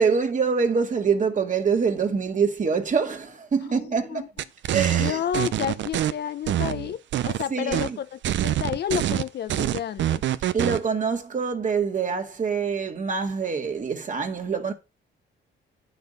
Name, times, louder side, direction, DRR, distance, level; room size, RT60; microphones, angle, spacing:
voice 1, 0.0-4.3 4.7-5.2 7.5-8.0 10.5-14.7, right 5 dB, 40° right, 1.9 m, -25 dB
voice 2, 3.6-4.3 5.0-10.2, left 9 dB, 55° left, 0.6 m, -31 dB
sound 1, 4.4-6.1 6.5-7.4 7.7-7.9 8.2-10.8, right 12 dB, 70° right, 0.6 m, -25 dB
9.5 x 6.0 x 5.4 m
cardioid pair, 90°, 20 cm